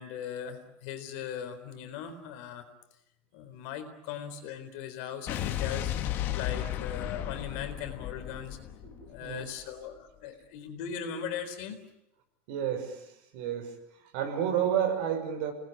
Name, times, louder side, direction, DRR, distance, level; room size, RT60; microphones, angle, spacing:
voice 1, 0.0-2.7 3.3-5.9 6.3-8.6 9.1-11.8, left 8 dB, 55° left, 8 dB, 4.1 m, -39 dB
Explosion, 5.3-9.6, left 11 dB, 35° left, 1.5 m, -34 dB
voice 2, 8.8-9.4 12.5-13.8 14.1-15.5, right 9 dB, 55° right, 5 dB, 6.3 m, -31 dB
28.5 x 19.5 x 9.1 m, 0.81 s
cardioid pair, 180°, 7 cm